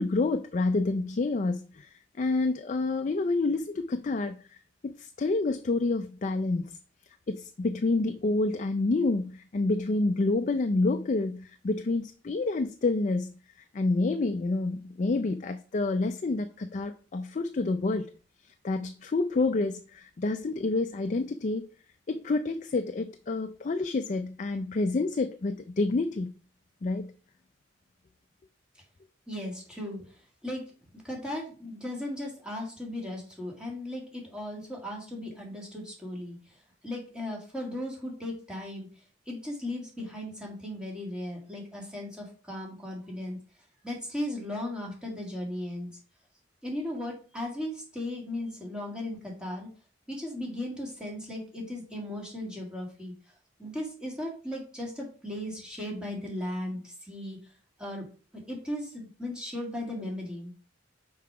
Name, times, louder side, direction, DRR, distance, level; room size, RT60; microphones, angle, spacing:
voice 1, 0.0-1.9 2.2-4.4 4.8-6.7 7.3-13.3 13.7-18.1 18.6-21.7 22.1-26.3 26.8-27.1, left 3 dB, 40° left, 0.4 m, -28 dB
voice 2, 29.3-30.6 30.9-38.9 39.3-43.4 43.8-45.9 46.6-49.7 50.1-53.1 53.6-57.4 57.8-58.1 58.3-60.6, left 1 dB, 5° right, 2.1 m, -37 dB
5.7 x 4.7 x 4.7 m
head